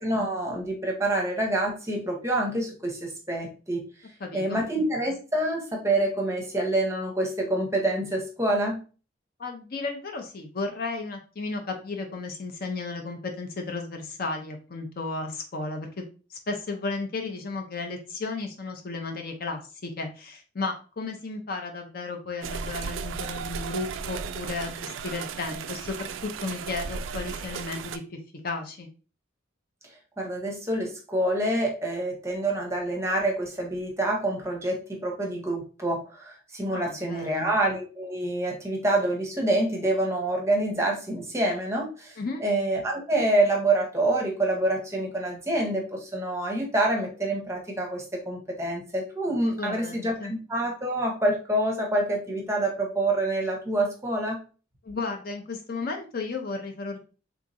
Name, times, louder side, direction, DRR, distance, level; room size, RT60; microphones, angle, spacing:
voice 1, 0.0-3.9 4.3-8.8 30.2-54.4, right 1 dB, 15° right, 0 dB, 0.7 m, -27 dB
voice 2, 4.2-4.6 9.4-16.0 16.3-28.2 28.4-28.9 36.7-37.5 42.2-42.4 49.6-50.3 54.8-57.0, left 3 dB, 50° left, 4 dB, 0.5 m, -34 dB
sound 1, 22.4-28.0, right 6 dB, 80° right, 0.3 m, -35 dB
3.5 x 2.9 x 2.5 m, 0.35 s
head